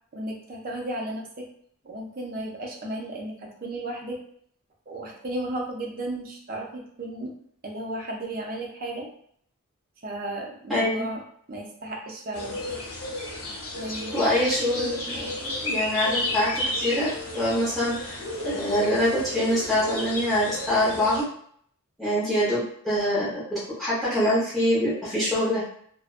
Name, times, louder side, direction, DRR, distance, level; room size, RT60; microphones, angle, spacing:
voice 1, 0.1-1.5 1.8-4.2 4.9-7.3 7.6-9.1 10.0-11.2 11.5-12.6 13.8-14.2, right 1 dB, 40° right, -1 dB, 0.5 m, -34 dB
voice 2, 10.7-11.0 14.1-21.2 22.0-25.6, left 1 dB, ahead, -11 dB, 0.9 m, -25 dB
sound 1, 12.3-21.2, left 1 dB, 85° left, 0.9 m, -32 dB
2.5 x 2.1 x 2.4 m, 0.63 s
head